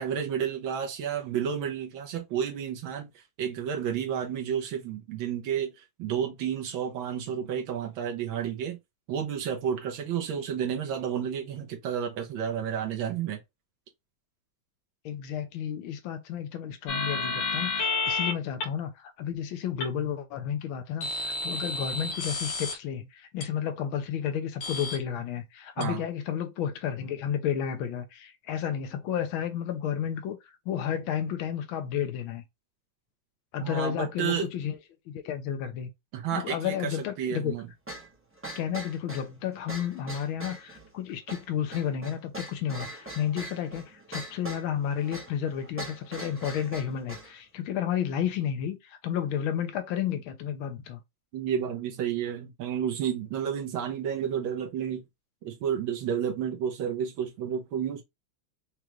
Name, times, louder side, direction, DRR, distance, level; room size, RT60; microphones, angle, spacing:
voice 1, 0.0-8.8 9.1-13.4 25.8-26.0 33.6-34.5 36.1-37.7 51.3-55.0 55.4-58.0, right 8 dB, 75° right, 1.5 m, -31 dB
voice 2, 15.0-30.4 30.7-32.4 33.5-34.8 35.1-35.9 36.3-37.5 38.5-51.0, left 9 dB, 85° left, 1.5 m, -32 dB
sound 1, 16.9-18.3 18.6-18.7 19.8-19.9 21.0-22.7 23.4-23.5 24.6-25.0 25.8-25.9, left 3 dB, 70° left, 1.5 m, -30 dB
sound 2, 37.9-47.3, right 2 dB, 15° right, 0.4 m, -42 dB
5.1 x 2.2 x 3.0 m
omnidirectional pair, 2.2 m